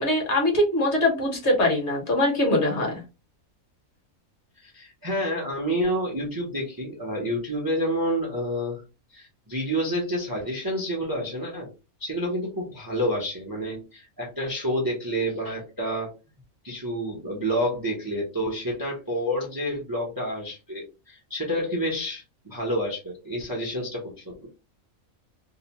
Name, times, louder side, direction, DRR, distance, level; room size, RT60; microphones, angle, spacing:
voice 1, 0.0-3.0, left 1 dB, 55° left, 0 dB, 1.2 m, -22 dB
voice 2, 4.6-8.8 9.1-11.7 12.0-16.1 16.6-24.5, equal, 25° right, -2 dB, 0.5 m, -29 dB
2.8 x 2.1 x 2.8 m, 0.29 s
omnidirectional pair, 1.5 m